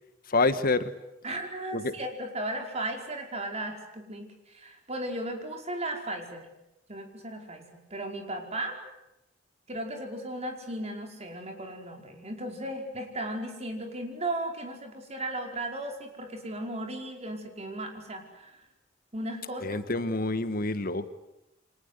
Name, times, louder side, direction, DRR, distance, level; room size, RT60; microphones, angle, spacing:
voice 1, 0.3-0.9 1.7-1.9 19.6-21.1, left 3 dB, 50° left, 11 dB, 1.4 m, -27 dB
voice 2, 1.2-6.5 6.9-8.8 9.7-18.6 19.1-19.8, right 1 dB, 35° right, 3 dB, 5.0 m, -36 dB
29.5 x 25.0 x 8.2 m, 0.90 s
head